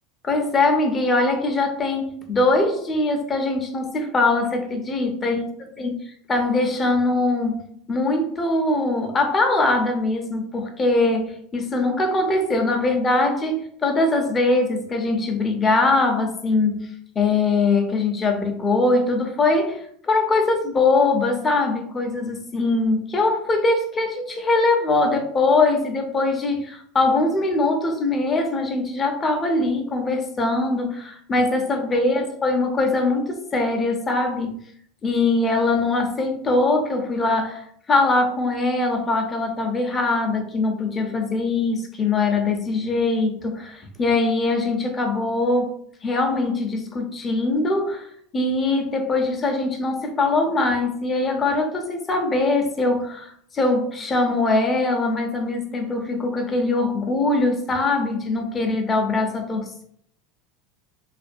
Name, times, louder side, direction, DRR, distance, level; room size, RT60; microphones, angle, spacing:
voice 1, 0.2-5.5 5.8-6.0 6.3-34.6 35.0-37.6 37.9-45.7 46.0-59.8, left 2 dB, 25° left, 4 dB, 0.6 m, -22 dB
2.5 x 2.2 x 2.5 m, 0.64 s
hypercardioid pair, 95°, 0 cm